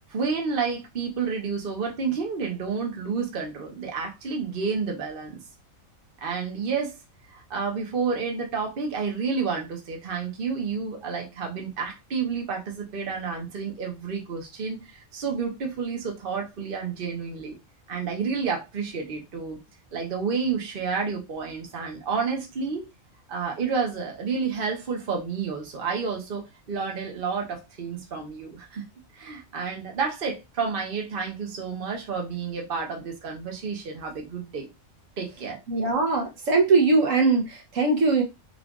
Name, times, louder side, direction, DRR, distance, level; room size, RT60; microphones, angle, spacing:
voice 1, 0.1-5.4 6.2-6.9 7.3-17.6 17.9-19.6 19.9-22.9 23.3-28.9 29.1-34.7 35.2-35.6, right 5 dB, 45° right, 1.1 m, -30 dB
voice 2, 35.7-38.2, right 3 dB, 70° right, 1.3 m, -21 dB
3.8 x 2.5 x 3.6 m
omnidirectional pair, 1.4 m